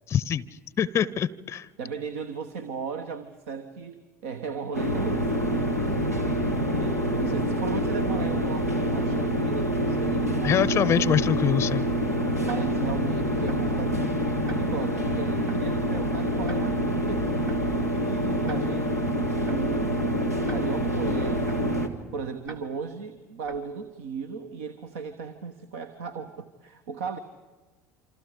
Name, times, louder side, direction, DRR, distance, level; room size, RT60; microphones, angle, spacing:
voice 1, 0.1-0.4 0.8-1.7 10.4-11.8, left 9 dB, 35° left, 22 dB, 0.6 m, -24 dB
voice 2, 1.8-5.8 6.7-10.9 12.3-14.2 14.5-17.4 17.8-21.8 22.1-27.2, right 5 dB, 65° right, 8 dB, 1.1 m, -36 dB
sound 1, 4.7-21.9, equal, 90° right, 1.6 m, -26 dB
Tick-tock, 12.4-12.9 13.5-13.8 14.5-14.9 15.5-15.8 16.5-16.9 17.5-17.8 18.5-18.9 19.5-19.8 20.5-20.9 21.5-21.8 22.4-22.9 23.4-23.8, right 4 dB, 50° right, 2.4 m, -46 dB
28.0 x 26.0 x 5.0 m, 1.3 s
figure-of-eight pair, 65°, 8 cm